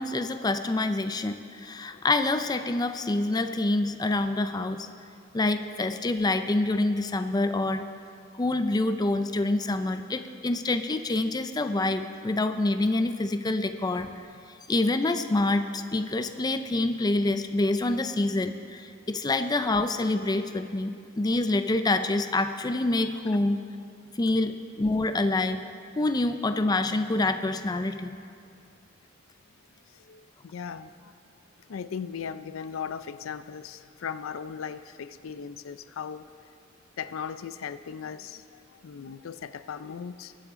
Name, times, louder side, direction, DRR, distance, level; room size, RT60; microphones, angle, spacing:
voice 1, 0.0-4.9 5.3-7.9 8.3-14.2 14.7-23.6 24.1-25.6 26.0-28.2, left 2 dB, 20° left, 9 dB, 0.4 m, -26 dB
voice 2, 29.9-31.2 31.7-36.3 37.0-40.4, left 7 dB, 85° left, 13 dB, 0.4 m, -38 dB
22.0 x 8.5 x 3.7 m, 2.4 s
head